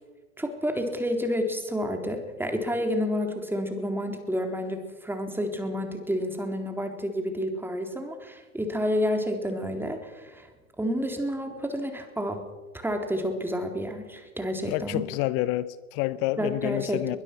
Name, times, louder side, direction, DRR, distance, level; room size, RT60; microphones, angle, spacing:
voice 1, 0.4-10.5 10.8-12.4 12.8-15.0 16.4-17.2, equal, 5° right, 5 dB, 3.9 m, -30 dB
voice 2, 14.7-17.2, left 16 dB, 40° left, 18 dB, 0.8 m, -28 dB
22.5 x 21.0 x 6.2 m, 1.3 s
figure-of-eight pair, 95°, 42 cm